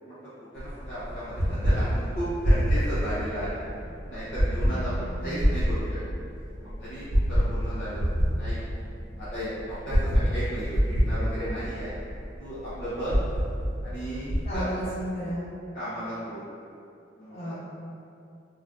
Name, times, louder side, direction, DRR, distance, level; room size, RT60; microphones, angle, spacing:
voice 1, 0.5-3.6 4.1-5.8 6.6-7.0 7.3-8.6 9.2-11.9 12.4-13.2 13.8-14.6 15.7-16.4 17.2-17.5, right 1 dB, 55° left, -13 dB, 0.7 m, -35 dB
sound 1, 0.6-14.5, equal, 80° left, 0.9 m, -27 dB
voice 2, 4.6-5.4 14.4-15.5 17.3-17.5, right 1 dB, 35° left, -13 dB, 1.3 m, -34 dB
3.6 x 2.4 x 2.4 m, 2.6 s
head